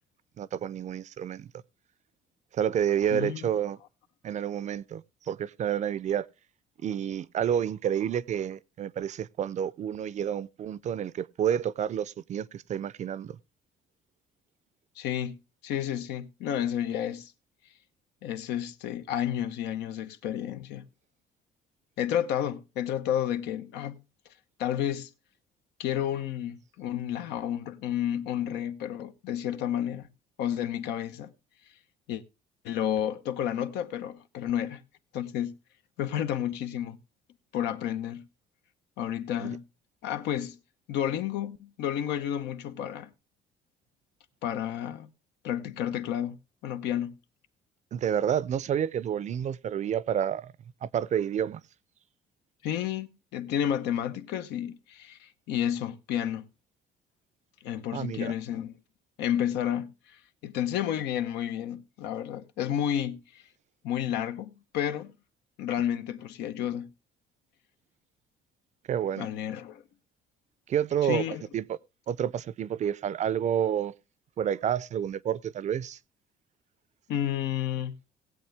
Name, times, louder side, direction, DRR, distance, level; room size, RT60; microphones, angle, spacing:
voice 1, 0.4-1.5 2.5-3.8 4.2-6.3 6.8-13.4 39.4-39.6 47.9-50.5 50.8-51.6 57.9-58.3 68.9-69.3 70.7-71.2 71.5-71.8 72.1-73.9 74.4-76.0, right 9 dB, 45° right, 0.5 m, -29 dB
voice 2, 3.1-3.5 15.0-17.3 18.2-20.8 22.0-24.0 24.6-25.1 25.8-30.1 30.4-31.3 32.1-32.2 32.6-34.8 35.1-35.6 36.0-37.0 37.5-38.3 39.0-39.6 40.0-40.6 40.9-43.1 44.4-45.1 45.4-46.4 46.6-47.2 52.6-56.5 57.6-58.8 59.2-63.4 63.8-65.1 65.6-66.9 69.2-69.8 71.0-71.4 77.1-78.0, left 10 dB, 85° left, 0.9 m, -31 dB
18.0 x 7.9 x 3.4 m
cardioid pair, 110°, 17 cm